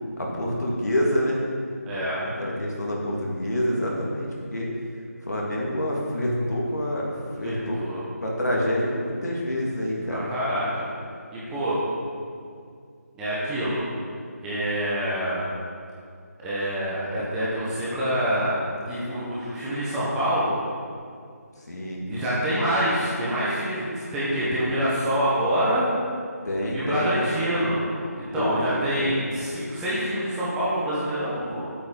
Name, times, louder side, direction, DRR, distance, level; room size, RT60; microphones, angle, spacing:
voice 1, 0.2-1.4 2.4-4.7 5.2-10.3 21.6-22.1 26.4-27.4 28.3-29.2, equal, 80° left, -3 dB, 2.6 m, -27 dB
voice 2, 1.9-2.2 7.4-8.0 10.1-10.9 11.3-11.8 13.1-13.8 14.4-15.4 16.4-18.5 18.9-20.5 22.1-25.9 26.7-31.7, equal, 5° right, -10 dB, 1.3 m, -26 dB
8.6 x 8.5 x 5.5 m, 2.3 s
figure-of-eight pair, 165°, 9 cm